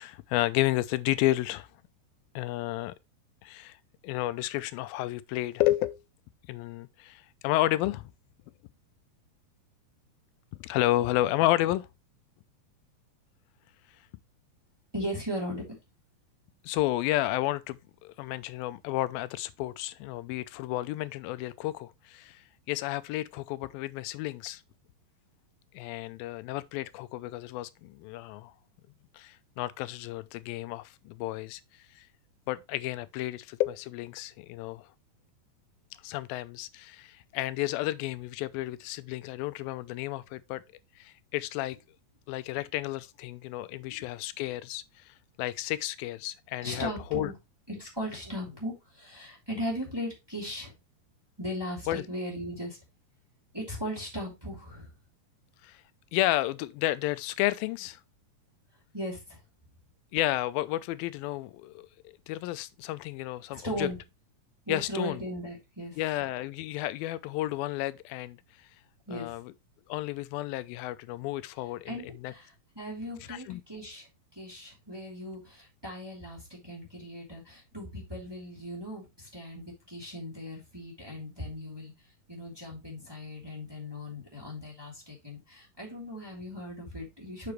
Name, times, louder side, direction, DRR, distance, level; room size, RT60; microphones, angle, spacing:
voice 1, 0.0-1.7 2.4-2.9 3.4-3.8 4.0-6.0 6.5-8.1 10.6-11.9 16.6-22.4 22.7-24.6 25.7-28.5 29.1-31.6 32.0-32.1 32.5-34.8 36.0-40.6 41.0-41.8 42.3-44.8 45.4-47.3 51.9-52.0 55.6-55.8 56.1-58.0 60.1-63.9 64.7-65.2 66.0-68.4 69.1-69.5 69.9-71.9 72.2-72.3 73.3-73.6, left 16 dB, 90° left, 2.4 m, -31 dB
voice 2, 14.9-15.8 43.7-44.1 46.6-47.3 47.7-50.7 51.4-52.8 53.5-54.9 58.9-59.4 63.5-64.0 64.7-66.0 69.1-69.4 71.8-81.9 82.3-87.5, equal, 5° right, 2.6 m, -38 dB
6.8 x 6.7 x 3.1 m
omnidirectional pair, 4.1 m